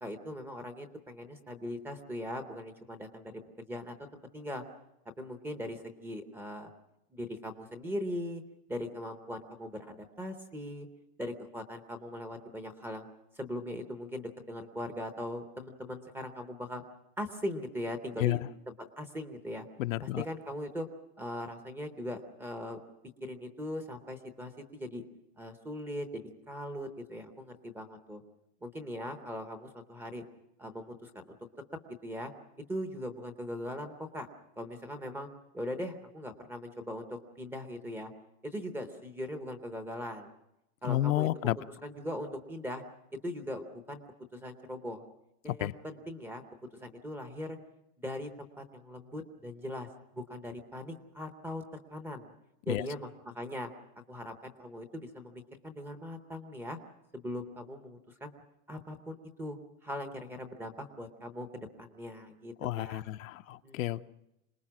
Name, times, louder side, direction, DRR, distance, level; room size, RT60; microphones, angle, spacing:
voice 1, 0.0-3.4 3.7-4.6 5.2-6.7 7.1-8.4 8.7-10.9 11.2-13.1 13.4-16.8 17.2-18.4 19.0-19.7 20.0-20.9 21.2-22.8 23.2-25.0 25.4-28.2 28.6-30.2 30.6-31.3 32.0-32.3 32.7-34.3 34.6-35.3 35.5-38.1 38.4-40.3 40.8-42.8 43.2-44.0 44.3-45.0 45.4-46.4 46.8-47.6 48.0-49.9 50.1-51.6 51.9-52.3 52.7-53.7 54.1-56.8 57.1-58.3 58.7-59.6 59.8-63.0 63.6-64.1, left 1 dB, 5° right, 6 dB, 0.7 m, -40 dB
voice 2, 19.8-20.2 40.8-41.6 45.6-45.7 52.7-52.8 62.6-64.1, left 15 dB, 60° left, 11 dB, 0.7 m, -30 dB
26.5 x 20.0 x 6.0 m, 0.86 s
supercardioid pair, 180°, 45 cm